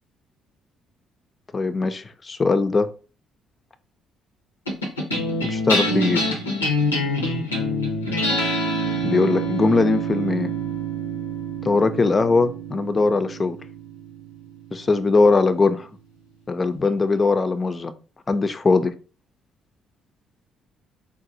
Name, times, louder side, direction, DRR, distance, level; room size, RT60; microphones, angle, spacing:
voice 1, 1.5-2.9 5.4-6.2 9.0-10.5 11.6-13.6 14.7-15.9 16.5-17.9 18.3-18.9, left 3 dB, 30° left, 0.4 m, -20 dB
sound 1, 4.7-15.3, equal, 90° left, 0.5 m, -26 dB
3.9 x 2.0 x 2.7 m
figure-of-eight pair, 45°, 0 cm